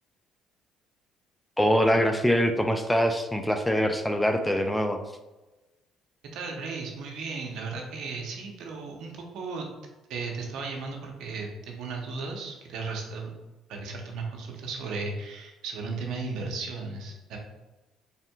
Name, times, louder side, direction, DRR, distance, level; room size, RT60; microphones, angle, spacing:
voice 1, 1.6-5.0, equal, 5° left, 6 dB, 0.4 m, -24 dB
voice 2, 6.3-9.7 10.1-13.3 13.7-17.4, right 4 dB, 75° right, 1 dB, 0.8 m, -35 dB
4.2 x 3.6 x 2.3 m, 1.1 s
supercardioid pair, 85°, 0 cm